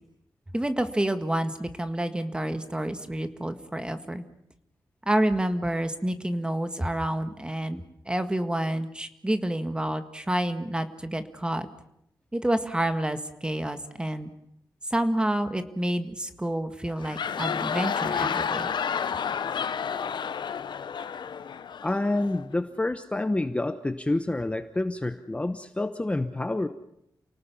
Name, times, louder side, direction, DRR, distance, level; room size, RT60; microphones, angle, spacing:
voice 1, 0.5-4.2 5.1-11.7 12.3-14.3 14.9-18.7, right 1 dB, 10° right, 9 dB, 1.8 m, -28 dB
sound 1, 16.9-22.4, left 7 dB, 75° left, 0.9 m, -30 dB
voice 2, 21.8-26.7, left 2 dB, 15° left, 9 dB, 1.0 m, -28 dB
29.0 x 18.5 x 7.1 m, 0.78 s
wide cardioid pair, 130°, 8 cm